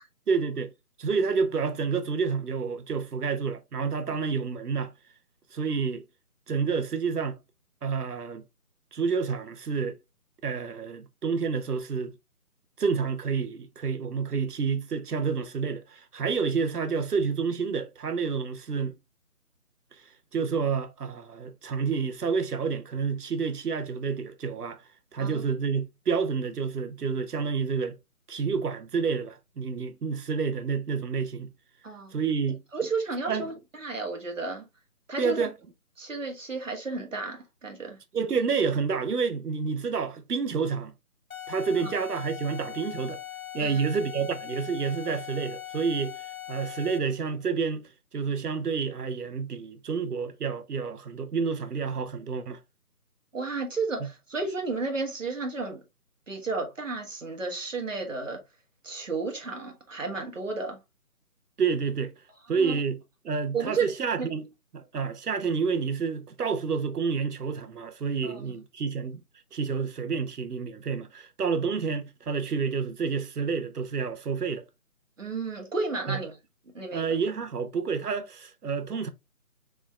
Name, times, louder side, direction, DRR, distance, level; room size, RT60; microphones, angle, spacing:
voice 1, 0.3-0.7 1.0-4.9 5.5-6.0 6.5-7.4 7.8-8.4 8.9-10.0 10.4-12.1 12.8-18.9 20.0-20.1 20.3-24.8 25.1-28.0 28.3-31.5 32.1-32.6 33.3-33.5 35.2-35.5 38.1-40.9 41.5-43.2 43.5-52.6 54.0-54.1 61.6-62.1 62.5-64.5 64.7-69.2 69.5-74.6 76.1-76.2 76.9-79.1, right 5 dB, 85° right, 0.9 m, -29 dB
voice 2, 31.8-32.2 32.7-34.6 35.1-35.5 36.0-38.0 41.8-41.9 43.6-43.8 53.3-55.8 56.3-58.4 58.8-60.8 62.5-62.8 63.5-63.9 64.2-64.3 68.2-68.4 75.2-76.3 76.7-77.1, right 4 dB, 55° right, 1.5 m, -32 dB
sound 1, 41.3-47.2, left 12 dB, 65° left, 0.8 m, -40 dB
5.0 x 3.6 x 2.3 m
figure-of-eight pair, 180°, 45 cm